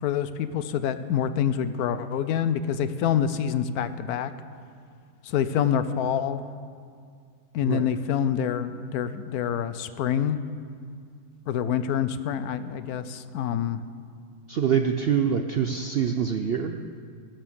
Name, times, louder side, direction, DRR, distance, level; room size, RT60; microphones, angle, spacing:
voice 1, 0.0-4.3 5.2-6.4 7.5-10.4 11.5-13.8, left 8 dB, 75° left, 12 dB, 1.1 m, -26 dB
voice 2, 14.5-16.8, right 7 dB, 70° right, 6 dB, 0.5 m, -25 dB
16.5 x 7.3 x 7.0 m, 2.2 s
omnidirectional pair, 1.6 m